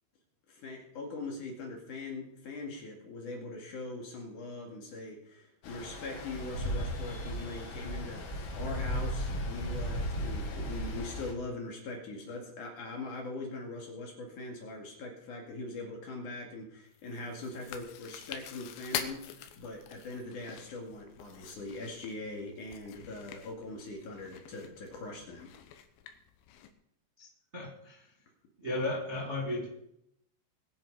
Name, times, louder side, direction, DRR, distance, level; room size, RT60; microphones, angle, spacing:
voice 1, 0.5-19.3 19.5-25.5, left 2 dB, 50° left, 1 dB, 3.0 m, -41 dB
Stream, 5.6-11.3, equal, 70° left, 4.8 m, -36 dB
Chewing mastication, 16.9-26.7, left 9 dB, 90° left, 3.8 m, -45 dB
voice 2, 27.5-28.0 28.6-29.7, left 2 dB, 80° right, -3 dB, 0.6 m, -34 dB
22.0 x 8.0 x 5.3 m, 0.76 s
omnidirectional pair, 5.7 m